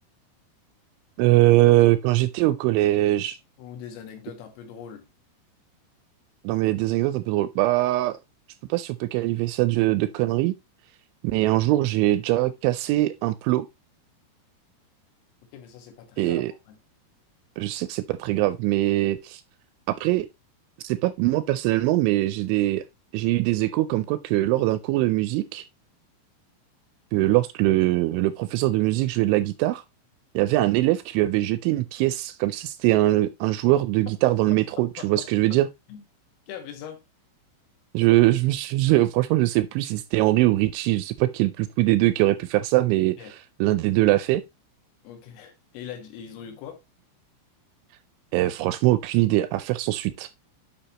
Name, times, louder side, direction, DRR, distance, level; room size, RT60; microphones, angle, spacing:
voice 1, 1.2-3.4 6.4-8.2 8.7-10.5 11.2-13.7 16.2-16.5 17.6-19.4 19.9-20.3 20.8-22.8 23.1-25.6 27.1-29.8 30.4-35.7 37.9-43.2 43.6-44.4 48.3-50.3, right 17 dB, 85° right, 2.8 m, -22 dB
voice 2, 3.6-5.1 15.5-16.8 27.2-27.4 34.5-34.6 35.0-35.6 35.9-36.0 36.5-37.0 43.2-43.3 45.0-46.8, left 8 dB, 85° left, 4.3 m, -41 dB
10.0 x 6.1 x 2.9 m
omnidirectional pair, 5.7 m